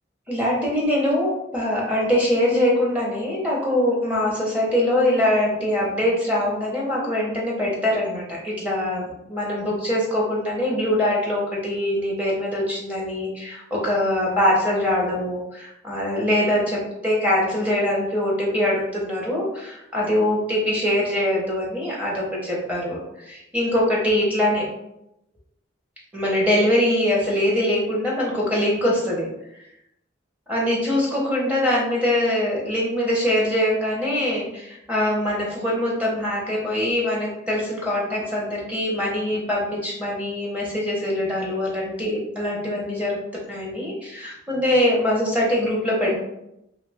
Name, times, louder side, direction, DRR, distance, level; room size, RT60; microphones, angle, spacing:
voice 1, 0.3-24.7 26.1-29.7 30.5-43.2 43.5-46.2, left 1 dB, 5° right, -4 dB, 0.7 m, -23 dB
2.7 x 2.4 x 3.3 m, 0.84 s
head